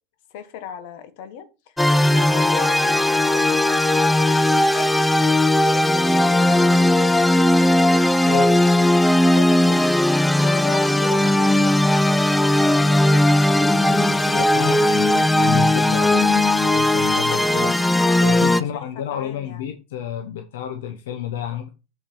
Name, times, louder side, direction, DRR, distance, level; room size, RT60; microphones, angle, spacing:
voice 1, 0.3-7.4 9.2-9.8 10.4-13.8 14.1-14.8 18.5-19.7, left 8 dB, 70° left, 1.4 m, -38 dB
sound 1, 1.8-18.6, left 1 dB, 10° left, 0.5 m, -17 dB
voice 2, 8.2-8.6 14.3-17.8 18.2-21.7, left 9 dB, 90° left, 0.8 m, -30 dB
7.3 x 4.4 x 5.3 m
supercardioid pair, 115°, 0 cm